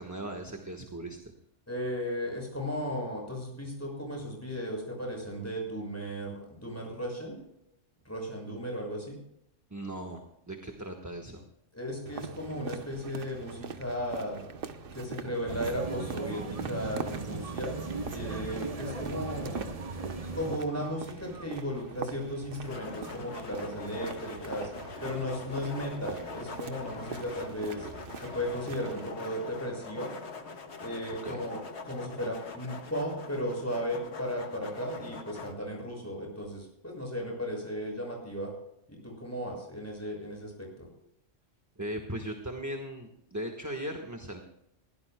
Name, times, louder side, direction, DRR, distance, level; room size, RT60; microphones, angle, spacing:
voice 1, 0.0-1.3 9.7-11.4 31.2-31.4 41.8-44.4, right 1 dB, 15° right, 3 dB, 1.3 m, -38 dB
voice 2, 1.7-7.4 8.0-9.2 11.7-14.4 14.9-17.8 18.1-19.6 20.3-24.7 25.0-27.9 28.2-30.1 30.8-38.5 38.9-40.9, equal, 10° left, 0 dB, 6.4 m, -35 dB
sound 1, 12.1-29.1, right 6 dB, 50° right, 1.0 m, -43 dB
sound 2, 15.5-20.6, right 3 dB, 30° right, 1.1 m, -37 dB
sound 3, 22.6-35.5, left 4 dB, 60° left, 1.6 m, -43 dB
21.5 x 16.5 x 2.2 m, 0.78 s
omnidirectional pair, 1.3 m